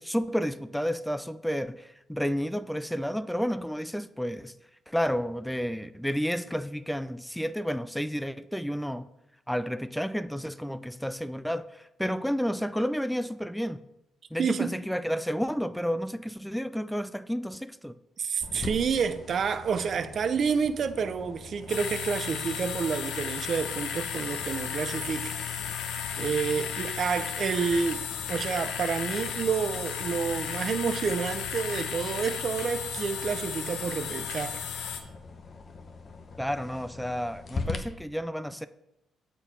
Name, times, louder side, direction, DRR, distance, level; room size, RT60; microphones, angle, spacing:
voice 1, 0.0-4.5 4.9-9.1 9.5-13.8 14.3-17.9 36.4-38.7, equal, ahead, 0.3 m, -31 dB
voice 2, 14.4-14.7 18.2-25.4 25.8-34.6, right 6 dB, 60° right, 0.5 m, -29 dB
sound 1, 18.4-37.8, left 4 dB, 50° left, 1.0 m, -43 dB
sound 2, 21.7-35.0, left 8 dB, 85° left, 0.7 m, -34 dB
7.0 x 4.5 x 5.3 m
supercardioid pair, 70°, 0 cm